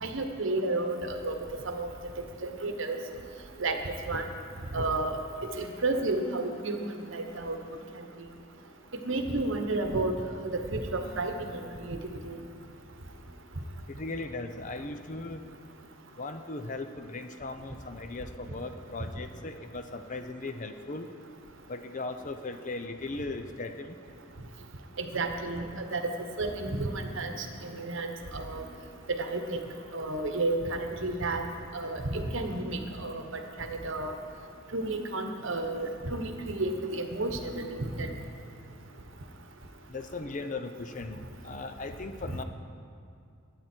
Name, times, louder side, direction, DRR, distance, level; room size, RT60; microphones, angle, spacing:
voice 1, 0.0-1.3 1.6-1.9 2.4-3.0 3.6-3.8 4.1-4.2 4.7-5.2 5.6-7.6 9.0-10.1 10.4-12.0 12.2-12.4 25.0-26.1 26.4-28.6 29.1-29.6 29.9-31.4 31.7-34.2 34.7-38.1, right 2 dB, 60° right, 5 dB, 1.2 m, -31 dB
voice 2, 13.9-15.4 16.2-21.1 21.7-24.0 39.9-42.4, left 3 dB, 35° left, 8 dB, 0.6 m, -38 dB
21.5 x 9.4 x 4.5 m, 2.4 s
head